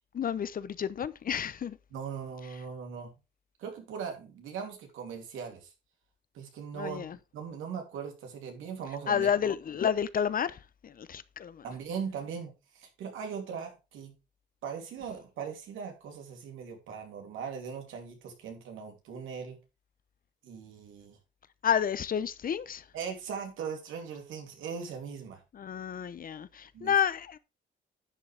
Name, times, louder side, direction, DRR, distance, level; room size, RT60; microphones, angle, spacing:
voice 1, 0.1-1.8 6.8-7.2 9.1-11.6 21.6-22.8 25.5-27.4, left 8 dB, 45° left, 0.7 m, -30 dB
voice 2, 1.9-3.1 3.6-5.7 6.3-7.1 7.3-9.3 11.6-14.1 14.6-19.6 20.4-21.2 22.9-25.4 26.7-26.9, right 6 dB, 85° right, 3.0 m, -39 dB
11.0 x 7.5 x 3.4 m
cardioid pair, 90°, 20 cm